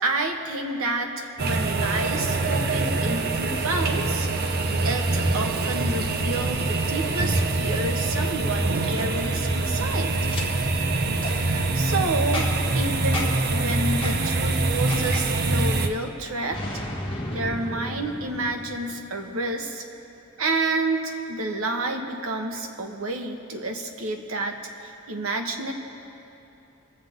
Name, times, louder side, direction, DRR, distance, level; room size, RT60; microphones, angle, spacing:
voice 1, 0.0-4.3 4.8-10.1 11.3-16.6 17.3-19.8 20.4-24.6 24.8-25.7, right 2 dB, 70° right, 3 dB, 1.1 m, -29 dB
sound 1, 1.4-15.9, right 2 dB, 50° right, 0.7 m, -24 dB
Boom, 10.3-10.4 11.2-11.4 12.3-12.7 13.1-13.5 14.0-14.2 14.9-15.3 16.5-19.2, left 1 dB, 25° left, 1.6 m, -33 dB
23.0 x 7.8 x 3.6 m, 2.8 s
head